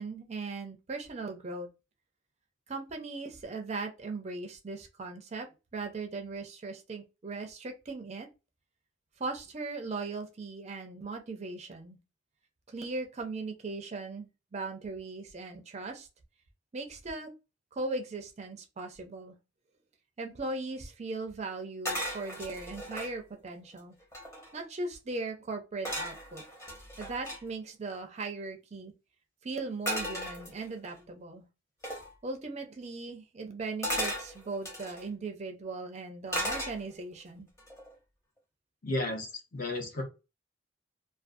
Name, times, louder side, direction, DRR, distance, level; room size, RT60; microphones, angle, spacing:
voice 1, 0.0-1.7 2.7-5.5 5.7-8.3 9.2-12.0 12.7-16.1 16.7-17.3 17.7-19.4 20.2-24.0 24.5-26.4 27.0-28.9 29.4-31.4 32.2-37.5, right 3 dB, 35° right, 0.4 m, -38 dB
sound 1, 21.8-23.1 23.7-23.8 24.0-24.6 25.8-27.4 29.9-30.9 31.8-32.1 33.8-35.0 36.3-37.1 37.6-37.9, equal, 15° left, 0.8 m, -36 dB
voice 2, 38.8-40.0, left 2 dB, 45° left, 0.8 m, -33 dB
2.4 x 2.3 x 2.5 m
head